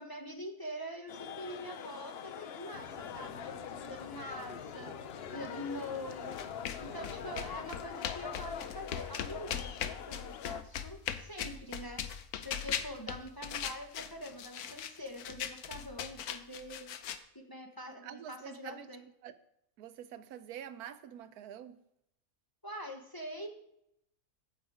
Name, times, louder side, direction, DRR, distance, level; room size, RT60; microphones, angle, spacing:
voice 1, 0.0-4.9 5.3-6.4 6.8-12.0 12.4-16.9 17.3-19.0 22.6-23.5, equal, 15° left, 2 dB, 1.0 m, -44 dB
sound 1, 1.1-10.6, left 9 dB, 65° left, 0.6 m, -44 dB
sound 2, 2.7-7.9, left 5 dB, 45° left, 0.9 m, -48 dB
sound 3, 6.1-17.2, left 9 dB, 85° left, 1.2 m, -40 dB
voice 2, 18.0-19.3 19.8-21.8, right 9 dB, 85° right, 12 dB, 1.2 m, -47 dB
14.0 x 5.4 x 4.9 m, 0.79 s
omnidirectional pair, 1.6 m